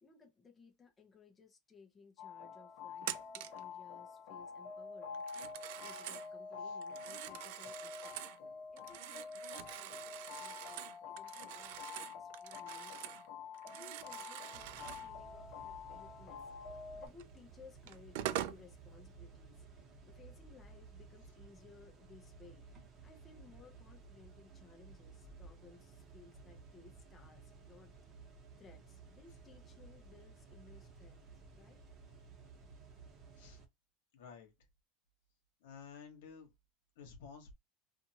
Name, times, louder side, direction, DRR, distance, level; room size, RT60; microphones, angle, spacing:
voice 1, 0.0-5.2 5.8-8.2 8.7-13.2 13.6-16.4 16.9-22.6 23.0-27.9 28.6-31.3 31.6-31.8, left 4 dB, 15° left, 0.7 m, -61 dB
sound 1, 2.2-17.1, left 5 dB, 60° left, 0.9 m, -48 dB
Telephone, 3.0-3.6 5.1-6.3 6.8-8.4 8.8-13.3 13.5-15.1 17.2-17.3 17.9-18.6, right 13 dB, 70° right, 0.3 m, -44 dB
sound 2, 14.5-33.7, right 4 dB, 30° right, 0.9 m, -56 dB
voice 2, 34.1-34.7 35.6-36.5 36.9-37.5, left 6 dB, 85° left, 1.1 m, -53 dB
2.6 x 2.5 x 2.7 m
supercardioid pair, 145°, 0 cm